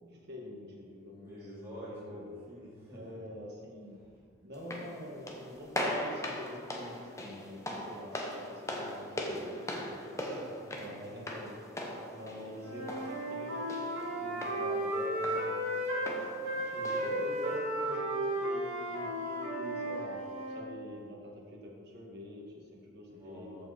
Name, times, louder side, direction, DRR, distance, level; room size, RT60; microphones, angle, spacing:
voice 1, 0.0-2.4 2.9-4.0 4.4-10.2 10.8-13.9 14.2-15.5 16.5-20.2 20.5-23.5, left 1 dB, 50° right, -3 dB, 2.0 m, -45 dB
voice 2, 1.1-3.2 4.0-4.1 10.3-10.9 23.1-23.7, equal, 10° right, -9 dB, 2.7 m, -48 dB
sound 1, 4.5-17.6, left 1 dB, 15° left, 0.9 m, -40 dB
Wind instrument woodwind instrument, 12.6-16.1 16.4-20.7, right 1 dB, 85° right, 2.2 m, -34 dB
14.0 x 5.3 x 4.4 m, 2.2 s
head